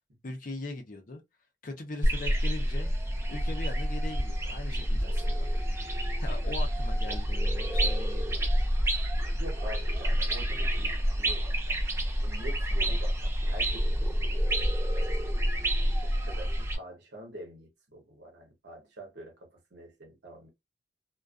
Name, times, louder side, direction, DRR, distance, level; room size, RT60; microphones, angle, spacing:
voice 1, 0.2-1.2 1.6-2.9 3.3-5.5 6.2-8.4, left 2 dB, 50° left, 0.6 m, -40 dB
sound 1, 2.0-16.8, equal, 15° right, 0.5 m, -28 dB
voice 2, 9.3-11.9 12.2-15.4 15.8-20.5, right 1 dB, 65° right, 0.9 m, -46 dB
2.4 x 2.2 x 2.3 m
head